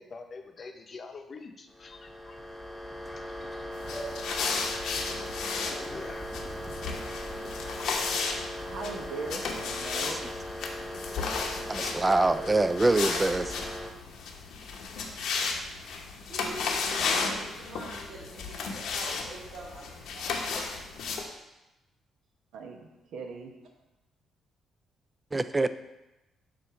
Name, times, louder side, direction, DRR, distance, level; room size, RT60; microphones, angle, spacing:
voice 1, 0.0-2.4 3.2-3.7 5.3-6.5 7.3-7.8, left 4 dB, 45° left, 5 dB, 0.7 m, -46 dB
sound 1, 1.7-13.9, equal, 10° left, 0.9 m, -39 dB
sound 2, 3.7-21.2, left 4 dB, 80° left, 0.8 m, -34 dB
voice 2, 8.6-10.2 22.5-23.5, right 4 dB, 85° right, 3 dB, 0.9 m, -40 dB
voice 3, 11.7-13.7 25.3-25.7, right 2 dB, 20° right, 12 dB, 0.3 m, -25 dB
voice 4, 16.2-20.7, right 2 dB, 55° right, -8 dB, 2.0 m, -45 dB
7.6 x 2.6 x 5.7 m, 0.98 s
cardioid pair, 90°, 0 cm